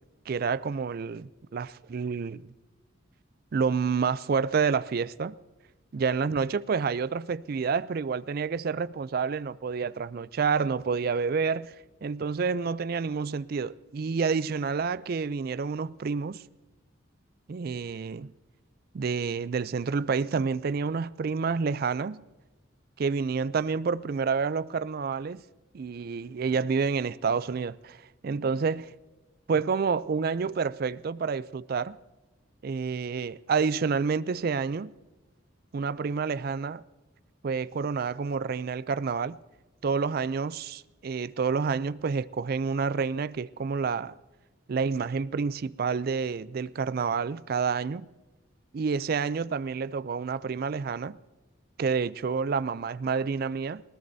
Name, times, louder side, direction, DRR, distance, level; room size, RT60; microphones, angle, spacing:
voice 1, 0.3-2.4 3.5-5.3 5.9-11.7 12.0-16.4 17.5-18.3 18.9-22.2 23.0-25.4 25.7-28.0 28.2-28.9 29.5-32.0 32.6-34.9 35.7-36.8 37.4-39.4 39.8-44.1 44.7-48.1 48.7-51.2 51.8-53.8, right 5 dB, 50° right, 0.4 m, -29 dB
20.0 x 18.5 x 2.7 m
head